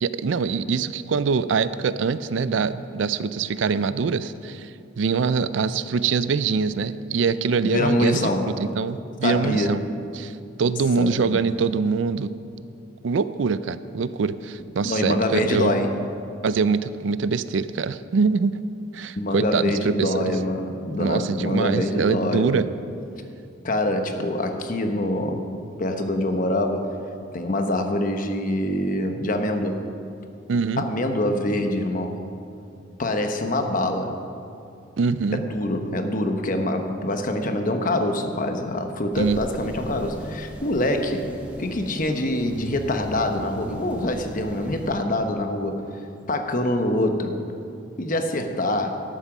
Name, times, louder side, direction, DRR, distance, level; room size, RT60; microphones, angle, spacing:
voice 1, 0.0-9.8 10.1-10.3 10.6-12.3 13.0-15.8 16.4-18.6 18.9-20.3 21.0-22.7 30.5-30.8 35.0-35.4 39.2-39.4, right 5 dB, 70° right, 14 dB, 0.4 m, -24 dB
voice 2, 7.7-8.6 9.2-9.8 11.0-11.4 14.8-15.9 19.2-22.6 23.6-25.5 25.8-26.9 27.3-29.8 30.8-32.2 33.0-34.2 35.3-41.3 41.6-45.8 46.3-47.4 48.0-49.0, left 1 dB, 45° left, 5 dB, 1.0 m, -25 dB
sound 1, 39.1-44.9, equal, 5° right, 1.3 m, -40 dB
12.5 x 8.9 x 6.1 m, 2.6 s
head